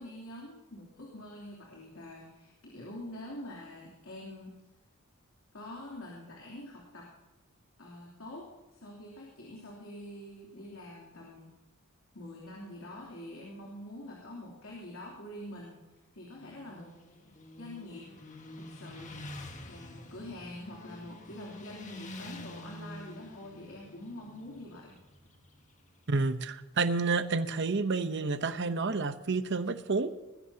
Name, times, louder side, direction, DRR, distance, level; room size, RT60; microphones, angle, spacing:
voice 1, 0.0-4.5 5.5-7.1 7.8-8.5 8.7-11.5 12.1-16.9 17.6-18.0 18.6-19.2 19.7-25.0, left 1 dB, 75° left, -4 dB, 3.2 m, -45 dB
Motorcycle, 16.3-26.1, left 1 dB, 35° left, 1.6 m, -48 dB
voice 2, 26.1-30.3, right 4 dB, 60° right, 10 dB, 0.9 m, -30 dB
20.0 x 15.5 x 2.8 m, 1.2 s
head